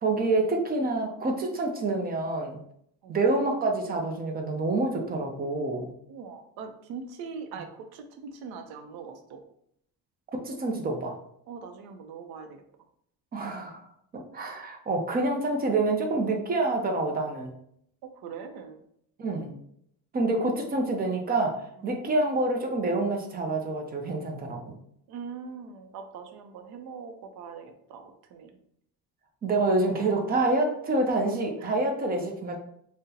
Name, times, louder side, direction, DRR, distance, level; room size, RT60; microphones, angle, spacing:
voice 1, 0.0-2.6 3.1-5.9 10.4-11.2 13.3-13.8 14.1-17.5 19.2-19.5 20.1-21.6 21.8-24.8 29.4-32.6, right 2 dB, 25° right, 2 dB, 0.4 m, -27 dB
voice 2, 6.1-9.4 11.5-12.6 18.0-18.8 25.1-28.6 31.6-31.8, right 5 dB, 90° right, 6 dB, 0.6 m, -42 dB
3.7 x 2.1 x 2.7 m, 0.71 s
cardioid pair, 155°, 36 cm